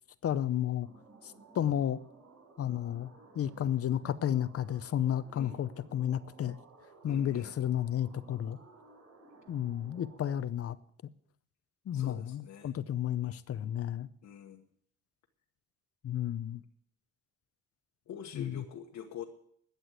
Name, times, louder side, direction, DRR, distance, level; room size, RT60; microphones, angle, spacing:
voice 1, 0.2-0.9 1.2-2.0 2.6-3.1 3.3-6.6 7.0-8.6 9.5-10.8 11.9-14.1 16.0-16.6 18.3-18.6, left 10 dB, 50° left, 0.7 m, -32 dB
sound 1, 0.8-10.4, right 3 dB, 60° right, 5.6 m, -57 dB
voice 2, 7.1-7.5 11.9-12.7 14.2-14.6 18.1-19.2, left 9 dB, 75° left, 1.3 m, -45 dB
12.5 x 8.1 x 8.0 m
cardioid pair, 90°, 30 cm